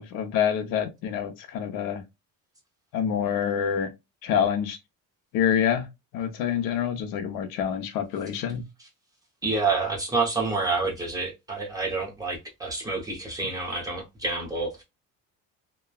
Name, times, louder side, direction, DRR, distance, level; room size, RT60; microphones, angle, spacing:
voice 1, 0.0-2.0 2.9-3.9 4.2-4.8 5.3-5.9 6.1-8.6, left 8 dB, 85° left, 0.7 m, -26 dB
voice 2, 9.4-14.8, right 3 dB, 10° right, 0.7 m, -28 dB
3.0 x 2.2 x 2.3 m
cardioid pair, 170°, 32 cm